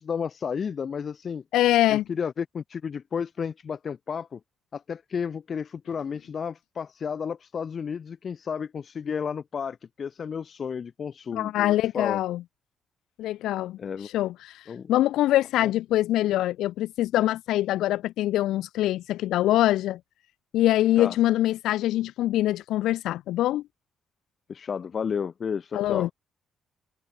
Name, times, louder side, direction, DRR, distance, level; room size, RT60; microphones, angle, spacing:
voice 1, 0.0-1.4 1.9-4.4 4.7-12.2 13.8-14.1 14.7-14.9 15.6-15.7 21.0-21.2 24.5-26.1, left 6 dB, 50° left, 4.6 m, -32 dB
voice 2, 1.5-2.0 11.3-12.4 13.2-20.0 20.5-23.6 25.7-26.1, left 14 dB, 85° left, 1.1 m, -24 dB
cardioid pair, 90°, 0 cm